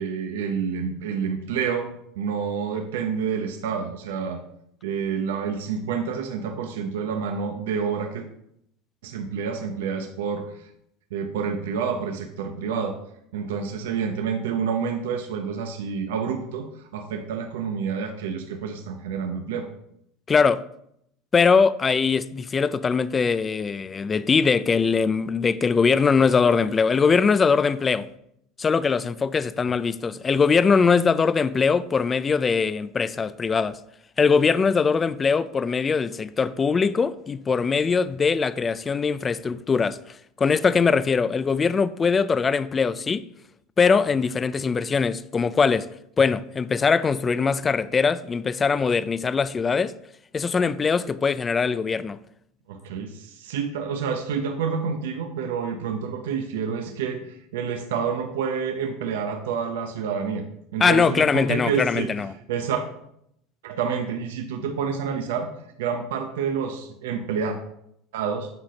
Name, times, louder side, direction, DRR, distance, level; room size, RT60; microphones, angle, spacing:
voice 1, 0.0-1.9 2.2-4.4 4.8-8.3 9.0-10.7 11.1-13.0 13.3-19.7 52.7-57.3 57.5-60.4 60.7-62.1 62.5-62.8 63.6-65.5 65.8-67.6 68.1-68.5, right 6 dB, 90° right, 0.8 m, -28 dB
voice 2, 20.3-20.6 21.3-28.1 28.6-33.8 34.2-40.0 40.4-43.2 43.8-45.9 46.2-50.0 50.3-52.2 60.8-62.3, left 5 dB, 20° left, 0.3 m, -21 dB
8.8 x 4.2 x 5.1 m
supercardioid pair, 120°, 0 cm